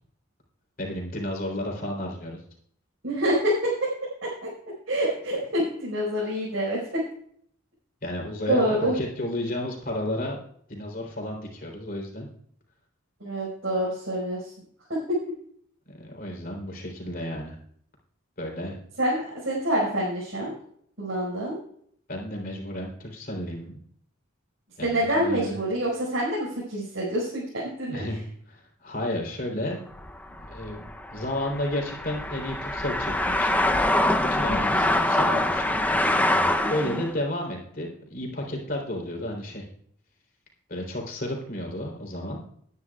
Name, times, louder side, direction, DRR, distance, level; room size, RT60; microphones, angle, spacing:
voice 1, 0.8-2.4 8.0-10.4 10.7-12.3 15.9-17.5 18.4-18.8 22.1-23.8 24.8-25.5 27.9-28.2 28.5-29.8 30.3-30.8 31.1-33.6 34.2-35.9 36.7-39.6 40.7-42.4, left 1 dB, 45° left, 0 dB, 3.4 m, -32 dB
voice 2, 3.0-4.5 4.9-7.0 8.5-9.0 13.2-14.5 14.9-15.2 19.0-20.5 21.0-21.6 24.8-28.0 34.5-34.9 36.6-37.0, equal, 65° right, -6 dB, 5.0 m, -27 dB
sound 1, 29.9-37.1, left 1 dB, 10° left, 0.6 m, -25 dB
20.0 x 9.9 x 2.4 m, 0.63 s
head